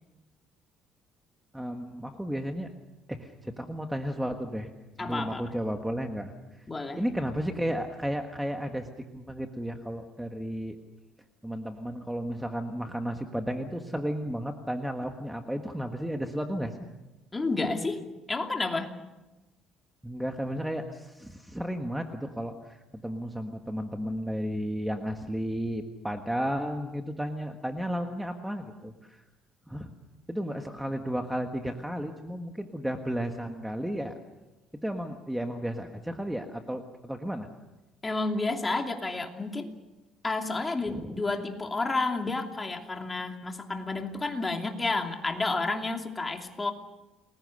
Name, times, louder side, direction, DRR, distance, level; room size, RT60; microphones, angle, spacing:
voice 1, 1.5-2.7 3.1-4.7 5.0-6.3 7.0-10.8 11.4-16.8 20.0-29.2 29.7-29.9 30.3-34.1 34.8-37.5 40.9-41.2, equal, 5° right, 4 dB, 1.6 m, -33 dB
voice 2, 5.0-5.4 6.7-7.0 17.3-18.9 38.0-39.7 40.2-46.7, left 3 dB, 20° left, 3 dB, 2.8 m, -30 dB
29.5 x 21.0 x 6.6 m, 1.1 s
cardioid pair, 120°, 0 cm